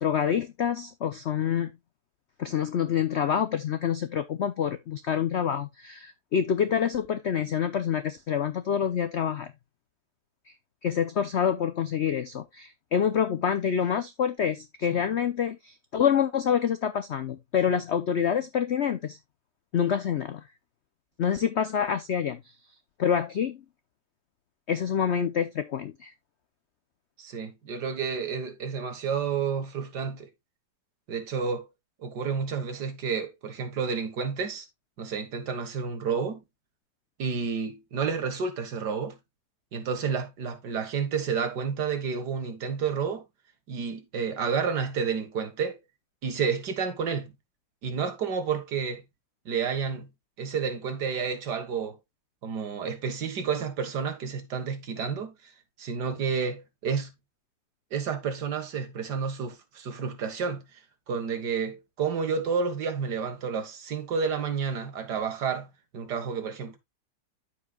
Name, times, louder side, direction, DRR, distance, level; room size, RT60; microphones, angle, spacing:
voice 1, 0.0-1.7 2.4-9.5 10.8-19.2 19.7-20.4 21.2-22.4 23.0-23.6 24.7-26.1, left 8 dB, 75° left, 0.6 m, -27 dB
voice 2, 27.2-30.3 31.1-31.7 32.0-34.7 35.0-36.4 37.2-39.2 39.7-43.2 43.7-45.8 46.2-47.3 47.8-49.1 49.5-50.1 50.4-52.0 52.4-55.3 55.8-57.1 57.9-60.7 61.1-66.8, right 6 dB, 65° right, 2.0 m, -30 dB
13.5 x 4.9 x 2.3 m
omnidirectional pair, 2.0 m